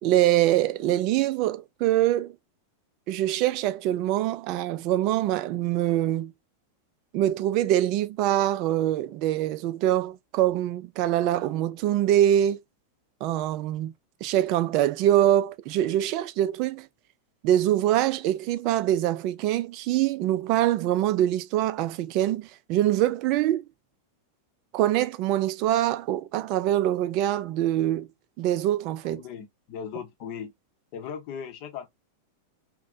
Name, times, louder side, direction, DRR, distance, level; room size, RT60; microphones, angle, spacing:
voice 1, 0.0-2.3 3.1-6.3 7.1-12.6 13.2-13.9 14.2-16.9 17.4-23.7 24.7-28.1 28.4-29.2, right 12 dB, 40° right, 0.3 m, -24 dB
voice 2, 29.0-30.5 30.9-31.9, left 7 dB, 45° left, 0.7 m, -38 dB
2.6 x 2.1 x 2.5 m
figure-of-eight pair, 90°, 0 cm